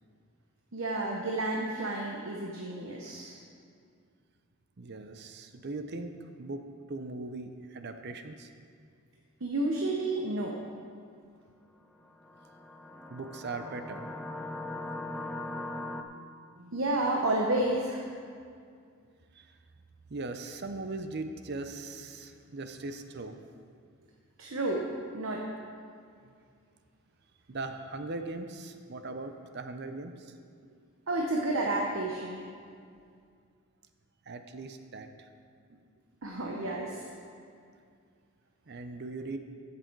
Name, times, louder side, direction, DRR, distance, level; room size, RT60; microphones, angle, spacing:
voice 1, 0.7-3.4 9.4-10.6 16.6-18.1 24.4-24.9 25.1-25.4 31.1-32.5 36.2-37.1, right 2 dB, 65° right, -1 dB, 1.0 m, -31 dB
voice 2, 4.8-6.6 6.9-8.5 13.1-14.1 19.3-19.5 20.1-23.4 27.5-30.3 34.3-35.3 38.7-39.4, right 3 dB, 50° right, 7 dB, 0.6 m, -39 dB
sound 1, 12.0-16.0, left 2 dB, 5° left, 0.5 m, -40 dB
15.0 x 6.9 x 4.6 m, 2.2 s
head